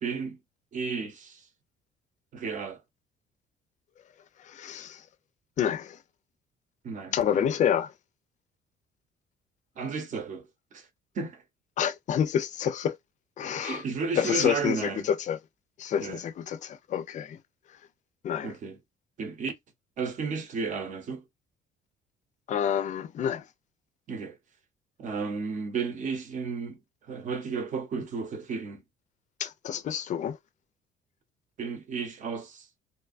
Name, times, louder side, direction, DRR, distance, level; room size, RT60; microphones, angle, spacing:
voice 1, 0.0-0.4 0.7-1.4 2.3-2.8 6.8-7.4 9.8-10.5 10.7-10.9 11.1-11.4 13.4-15.1 16.0-16.2 18.4-18.8 19.2-19.6 20.0-21.2 24.1-24.4 25.0-26.8 27.1-28.8 31.6-32.7, right 5 dB, 50° right, 0.8 m, -33 dB
voice 2, 4.4-5.1 5.6-6.0 7.1-7.9 11.8-13.0 13.4-13.8 14.2-15.4 15.8-17.4 17.7-17.8 18.2-18.5 22.5-23.5 29.4-30.4, left 9 dB, 45° left, 0.4 m, -28 dB
2.6 x 2.2 x 2.4 m
cardioid pair, 110°, 17 cm